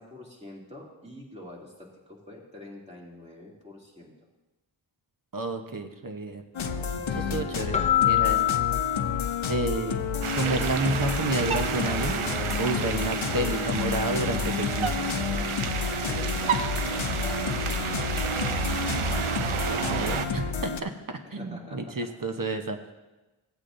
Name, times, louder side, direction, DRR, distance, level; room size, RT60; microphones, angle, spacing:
voice 1, 0.0-4.1 8.0-8.4 9.1-9.2 16.0-18.0 21.4-22.1, left 1 dB, 15° right, -3 dB, 2.6 m, -46 dB
voice 2, 5.3-6.4 7.1-8.6 9.5-10.0 10.4-12.2 12.6-15.1 19.7-22.8, right 2 dB, 45° right, 6 dB, 0.9 m, -30 dB
sound 1, 6.5-20.8, left 5 dB, 75° left, 0.7 m, -30 dB
Keyboard (musical), 7.7-10.1, left 13 dB, 15° left, 0.5 m, -26 dB
sound 2, 10.2-20.3, right 7 dB, 90° right, 0.7 m, -31 dB
15.5 x 8.3 x 2.6 m, 1.1 s
wide cardioid pair, 50°, 48 cm